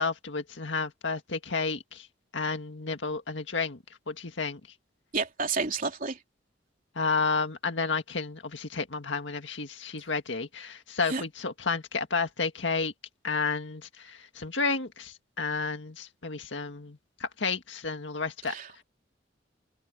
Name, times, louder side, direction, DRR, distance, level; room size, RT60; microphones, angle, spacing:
voice 1, 0.0-2.1 2.3-3.8 4.1-4.6 6.9-12.9 13.2-18.5, left 4 dB, 85° left, 1.8 m, -31 dB
voice 2, 5.1-6.2 11.1-11.2 18.5-18.8, right 4 dB, 50° right, 3.5 m, -30 dB
open air
head